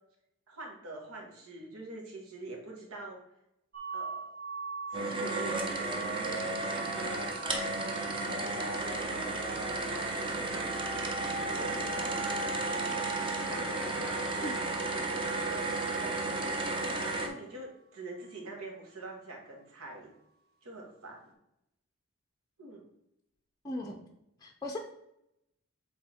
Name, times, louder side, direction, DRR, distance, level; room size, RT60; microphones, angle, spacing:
voice 1, 0.5-3.2 3.9-4.3 4.9-7.3 8.3-9.5 9.8-10.6 11.4-12.5 13.3-14.6 15.3-16.3 17.2-20.1 20.6-21.3 22.6-22.8, right 2 dB, 80° right, 0 dB, 1.7 m, -45 dB
sound 1, 3.7-15.5, right 4 dB, 45° right, 1.3 m, -45 dB
sound 2, 4.9-17.3, right 2 dB, 25° right, 0.7 m, -33 dB
voice 2, 23.6-24.0 24.4-24.8, left 1 dB, 15° left, 1 dB, 0.5 m, -37 dB
7.9 x 3.7 x 3.5 m, 0.83 s
head